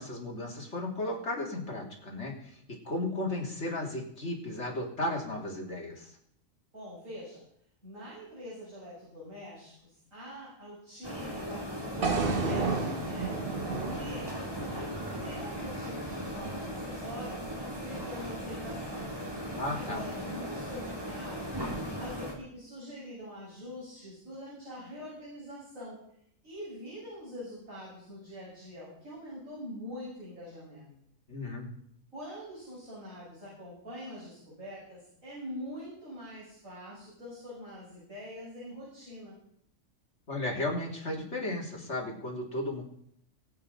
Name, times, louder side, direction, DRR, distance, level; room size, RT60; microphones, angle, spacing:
voice 1, 0.0-2.6 2.9-6.1 19.6-20.0 31.3-31.7 40.3-42.8, left 1 dB, 55° left, -1 dB, 3.5 m, -34 dB
voice 2, 6.7-7.4 7.8-19.1 19.7-26.0 26.4-30.9 32.1-39.4, equal, 75° right, -9 dB, 8.6 m, -44 dB
sound 1, 11.0-22.3, equal, 15° right, 3.6 m, -38 dB
sound 2, 12.0-16.1, right 3 dB, 45° right, 1.5 m, -33 dB
22.5 x 8.8 x 5.5 m, 0.71 s
omnidirectional pair, 1.4 m